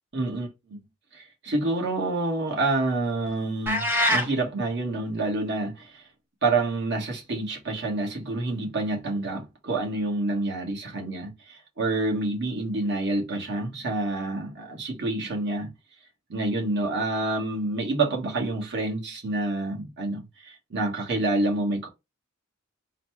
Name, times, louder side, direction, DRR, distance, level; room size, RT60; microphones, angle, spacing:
voice 1, 0.1-0.8 1.1-6.0 6.4-15.7 16.3-21.9, right 2 dB, 55° right, 1.3 m, -28 dB
sound 1, 3.7-4.3, left 1 dB, 10° right, 1.0 m, -23 dB
4.0 x 2.1 x 4.5 m
head